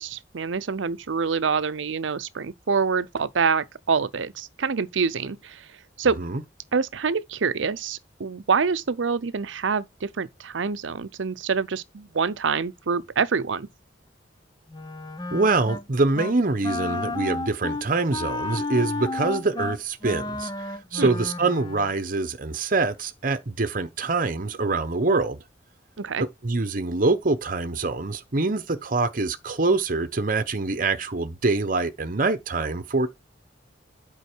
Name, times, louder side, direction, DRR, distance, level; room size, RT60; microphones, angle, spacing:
voice 1, 0.0-5.7 6.0-6.2 6.7-13.7 21.0-21.1 26.0-26.3, right 5 dB, 85° right, 0.6 m, -26 dB
Wind instrument woodwind instrument, 14.7-15.8 16.1-16.4 16.6-21.9, left 3 dB, 20° left, 0.9 m, -32 dB
voice 2, 15.3-20.5 20.9-25.4 26.4-33.1, right 3 dB, 45° right, 0.9 m, -24 dB
8.3 x 5.4 x 4.5 m
head